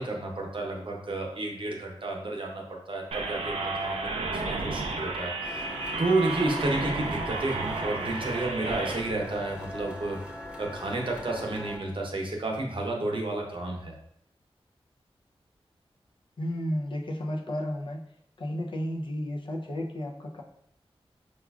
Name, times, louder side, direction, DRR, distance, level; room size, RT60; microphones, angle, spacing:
voice 1, 0.0-5.6 6.0-10.2 10.6-13.9, right 2 dB, 55° right, 0 dB, 0.7 m, -31 dB
sound 1, 3.1-9.0, right 3 dB, 85° right, 0.4 m, -32 dB
sound 2, 5.4-11.8, left 1 dB, 10° right, 0.6 m, -41 dB
voice 2, 16.4-18.0 18.4-20.4, equal, 55° left, 0 dB, 0.5 m, -32 dB
4.9 x 2.4 x 2.3 m, 0.72 s
wide cardioid pair, 65°, 10 cm